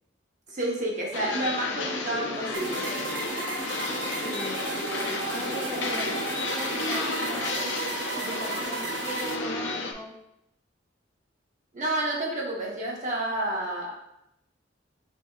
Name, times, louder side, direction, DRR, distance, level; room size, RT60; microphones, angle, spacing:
voice 1, 0.5-2.9 11.7-13.9, right 1 dB, 40° right, -3 dB, 1.0 m, -30 dB
sound 1, 1.1-9.9, left 3 dB, 80° left, 0.6 m, -32 dB
sound 2, 2.5-9.4, right 5 dB, 75° right, 0.5 m, -35 dB
voice 2, 3.7-7.7 8.1-10.1, left 1 dB, 15° left, 0 dB, 0.4 m, -40 dB
7.4 x 2.8 x 2.3 m, 0.83 s
head